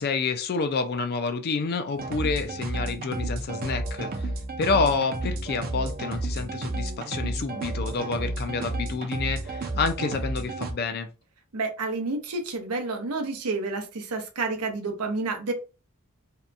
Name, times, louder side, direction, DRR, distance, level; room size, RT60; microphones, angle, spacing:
voice 1, 0.0-4.3 4.6-11.1, left 4 dB, 45° left, 0.4 m, -28 dB
sound 1, 2.0-10.7, right 2 dB, 40° right, 0.5 m, -31 dB
voice 2, 11.5-15.5, right 3 dB, 90° right, 0.6 m, -29 dB
2.7 x 2.2 x 2.4 m
head